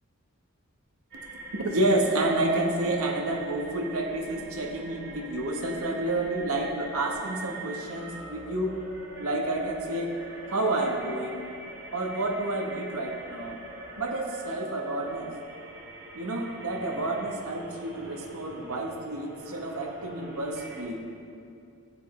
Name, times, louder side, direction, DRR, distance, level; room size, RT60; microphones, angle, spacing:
sound 1, 1.1-20.9, right 2 dB, 50° right, 1.7 m, -43 dB
voice 1, 1.5-8.8 9.2-10.1 10.5-11.4 11.9-13.6 14.0-15.3 16.1-21.1, right 2 dB, 85° right, 2 dB, 1.2 m, -29 dB
13.0 x 8.9 x 3.2 m, 2.5 s
head